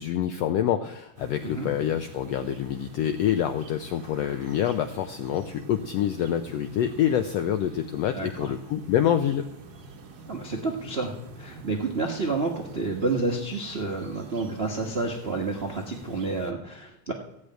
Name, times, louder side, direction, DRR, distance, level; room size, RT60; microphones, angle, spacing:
voice 1, 0.0-9.4, left 10 dB, 75° left, 8 dB, 1.5 m, -26 dB
sound 1, 1.2-16.5, right 3 dB, 60° right, 1.0 m, -45 dB
voice 2, 10.3-17.1, right 3 dB, 75° right, 1 dB, 0.5 m, -29 dB
15.0 x 6.7 x 9.2 m, 0.79 s
omnidirectional pair, 3.6 m